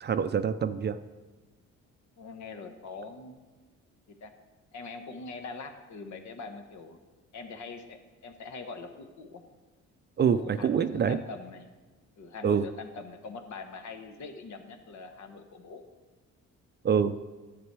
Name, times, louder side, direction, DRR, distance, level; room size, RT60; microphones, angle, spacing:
voice 1, 0.0-1.0 10.2-11.2 12.4-12.6 16.8-17.1, right 7 dB, 35° right, 12 dB, 0.4 m, -25 dB
voice 2, 2.2-3.4 4.2-4.3 4.7-7.0 7.3-9.4 10.2-11.7 12.2-15.8, left 4 dB, 70° left, 6 dB, 1.2 m, -43 dB
11.0 x 7.0 x 4.7 m, 1.3 s
cardioid pair, 90°, 30 cm